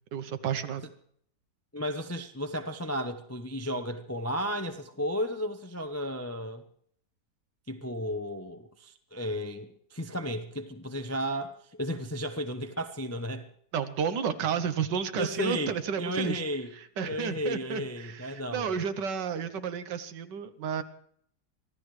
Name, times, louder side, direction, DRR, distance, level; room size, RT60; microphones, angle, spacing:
voice 1, 0.1-0.9 13.7-16.4 16.7-20.8, right 7 dB, 75° right, 11 dB, 1.6 m, -32 dB
voice 2, 1.7-6.6 7.7-13.5 15.2-16.7 17.0-18.8, equal, 20° left, 7 dB, 0.4 m, -34 dB
25.0 x 15.5 x 3.2 m, 0.64 s
omnidirectional pair, 1.9 m